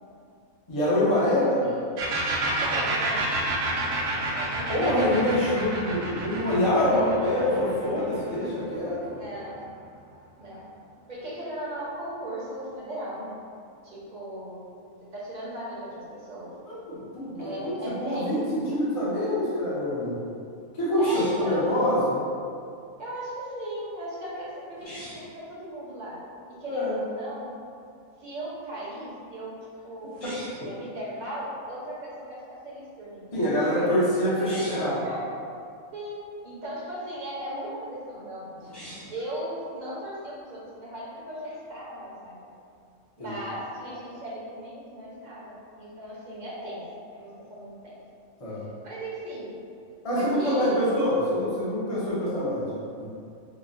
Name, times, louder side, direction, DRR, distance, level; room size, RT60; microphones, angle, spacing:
voice 1, 0.7-1.6 4.7-9.2 16.6-17.7 18.0-20.2 20.7-22.2 26.7-27.0 33.3-35.0 43.2-43.3 48.4-48.6 50.0-53.1, left 1 dB, 30° left, -8 dB, 0.6 m, -25 dB
voice 2, 1.3-1.7 2.6-3.4 4.2-5.1 5.4-5.8 6.8-7.1 9.1-9.6 10.4-10.7 11.1-13.3 13.8-14.6 15.1-16.5 17.3-18.5 21.0-21.7 23.0-26.2 26.5-27.5 28.2-30.2 30.6-33.3 33.7-33.9 34.3-35.3 35.9-38.7 39.1-42.5 43.2-46.8 47.1-48.0 48.8-49.5 50.1-50.9, right 1 dB, 40° right, -7 dB, 0.8 m, -37 dB
sound 1, 2.0-9.5, right 2 dB, 75° right, 0.9 m, -30 dB
sound 2, 21.0-21.6 24.7-25.3 30.1-30.7 34.3-35.0 38.6-39.2, equal, 75° left, 2.0 m, -42 dB
5.0 x 2.1 x 2.6 m, 2.4 s
omnidirectional pair, 1.4 m